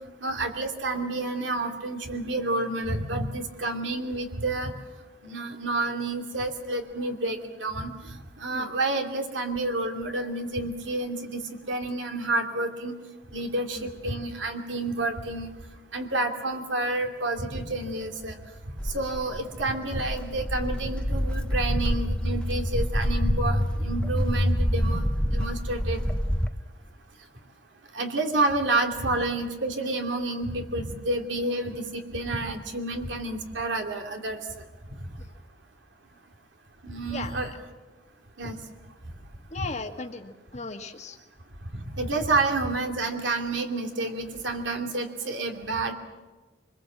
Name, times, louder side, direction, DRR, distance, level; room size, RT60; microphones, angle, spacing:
voice 1, 0.2-4.7 5.2-7.9 8.4-11.4 11.7-12.9 13.3-15.5 15.9-18.3 18.9-25.0 25.3-26.0 27.9-34.4 36.8-37.5 38.4-38.6 41.7-45.9, right 2 dB, 85° right, 3 dB, 2.7 m, -29 dB
Walk footsteps, 18.8-26.5, equal, 5° left, 0.9 m, -27 dB
voice 2, 39.5-41.2, left 3 dB, 40° left, 6 dB, 1.6 m, -36 dB
25.5 x 21.5 x 7.5 m, 1.2 s
head